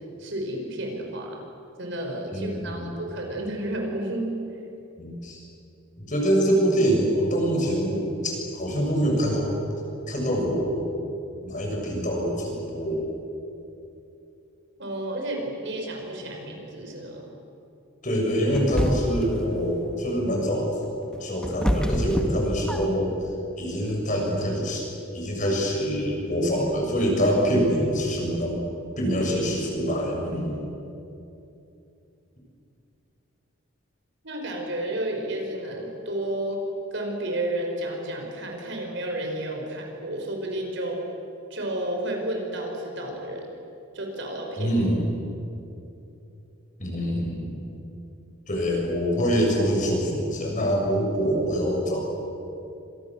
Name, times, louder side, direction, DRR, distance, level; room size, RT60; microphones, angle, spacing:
voice 1, 0.2-1.4 1.8-4.3 14.8-17.3 34.2-36.6 36.9-41.0 41.5-43.5 43.9-44.8, right 1 dB, 55° right, 1 dB, 5.7 m, -31 dB
voice 2, 2.3-2.9 5.0-5.4 6.0-9.6 10.1-10.9 11.4-13.1 18.0-20.7 21.2-23.1 23.6-24.8 25.1-28.6 29.0-30.7 44.6-45.1 46.8-47.6 48.5-52.0, equal, 35° left, 0 dB, 7.1 m, -25 dB
sound 1, 18.5-19.3 20.8-23.1, equal, 5° left, 2.0 m, -26 dB
29.5 x 26.5 x 7.5 m, 2.8 s
head